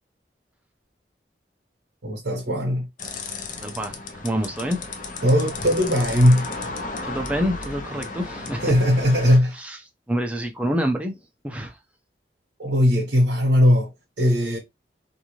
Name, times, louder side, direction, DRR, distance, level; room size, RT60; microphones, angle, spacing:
voice 1, 2.0-2.9 5.2-6.5 8.6-9.6 12.6-14.6, equal, 80° right, 0.9 m, -19 dB
sound 1, 3.0-9.4, left 3 dB, 45° left, 0.5 m, -34 dB
voice 2, 3.6-4.0 4.2-4.8 7.0-8.7 9.5-9.8 10.1-11.8, equal, 5° right, 0.5 m, -27 dB
2.6 x 2.5 x 3.0 m
head